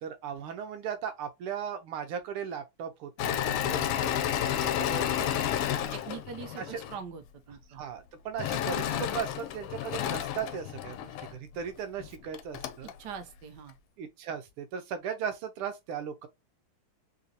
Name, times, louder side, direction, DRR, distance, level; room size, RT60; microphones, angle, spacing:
voice 1, 0.0-5.1 6.6-6.8 7.7-12.9 14.0-16.3, right 7 dB, 85° right, 1.7 m, -37 dB
Engine / Mechanisms, 3.2-7.0 8.4-11.3 12.0-12.1 12.3-12.9, left 10 dB, 85° left, 1.5 m, -31 dB
voice 2, 5.2-5.5 5.9-7.2 7.5-7.8 13.0-13.7, right 7 dB, 70° right, 1.0 m, -42 dB
3.8 x 2.5 x 2.7 m
omnidirectional pair, 2.4 m